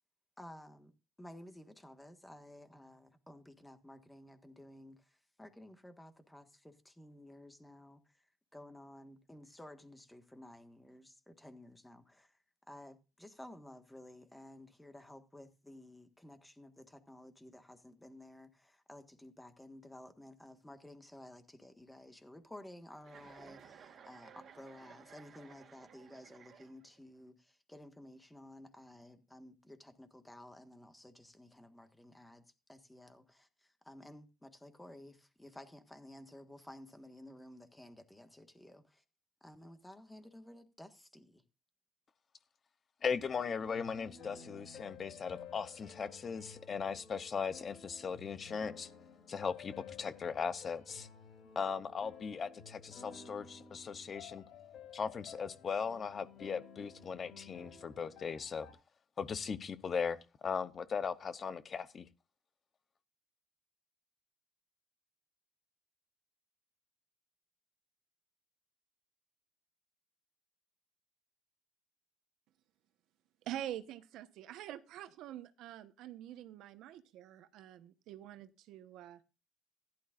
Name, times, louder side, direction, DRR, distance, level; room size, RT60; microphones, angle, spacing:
voice 1, 0.4-0.9 1.2-5.0 5.4-8.0 8.5-12.3 12.7-32.4 32.7-39.0 39.4-41.4, left 1 dB, 5° left, 1.5 m, -54 dB
Chuckle chortle, 23.0-27.1, right 7 dB, 45° right, 2.4 m, -57 dB
voice 2, 43.0-48.9 49.3-51.1 51.6-54.4 54.9-58.7 59.2-62.1, left 6 dB, 30° left, 0.8 m, -38 dB
sound 1, 43.3-58.7, left 6 dB, 55° left, 7.1 m, -54 dB
voice 3, 73.4-79.2, right 12 dB, 70° right, 1.0 m, -46 dB
15.5 x 11.5 x 2.5 m
cardioid pair, 145°, 0 cm